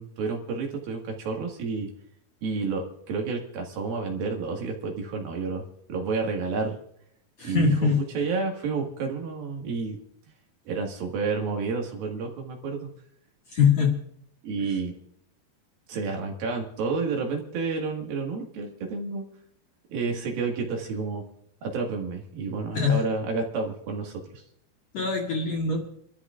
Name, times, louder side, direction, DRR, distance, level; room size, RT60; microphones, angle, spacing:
voice 1, 0.0-1.9 2.4-5.6 5.9-6.8 7.4-10.0 10.7-12.9 14.4-14.9 15.9-19.3 19.9-21.2 21.6-24.4, right 4 dB, 65° right, 1 dB, 3.4 m, -30 dB
voice 2, 7.4-8.0 13.5-14.0 22.7-23.0 24.9-25.9, left 5 dB, 50° left, -2 dB, 2.4 m, -22 dB
29.0 x 13.0 x 2.4 m, 0.71 s
omnidirectional pair, 4.7 m